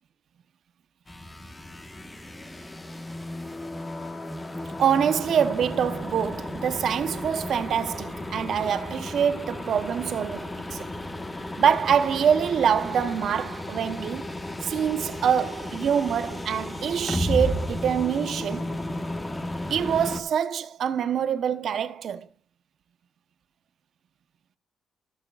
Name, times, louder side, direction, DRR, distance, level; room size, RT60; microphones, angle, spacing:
sound 1, 1.1-20.2, left 1 dB, 15° left, 1.3 m, -34 dB
voice 1, 4.8-10.9 11.6-14.3 14.6-18.7 19.7-22.3, right 8 dB, 65° right, 0.9 m, -25 dB
17.5 x 6.6 x 2.4 m
cardioid pair, 90°, 0 cm